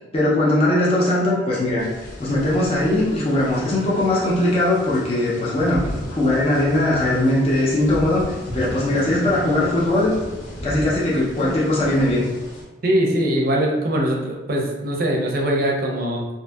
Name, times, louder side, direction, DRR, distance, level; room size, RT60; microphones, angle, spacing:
voice 1, 0.1-1.9 2.2-5.8 6.1-10.1 10.6-12.2, left 1 dB, 30° left, -6 dB, 0.4 m, -20 dB
sound 1, 1.8-12.6, equal, 85° left, 0.9 m, -35 dB
voice 2, 12.8-16.3, right 1 dB, 50° right, 0 dB, 0.4 m, -21 dB
2.6 x 2.6 x 2.2 m, 1.1 s
head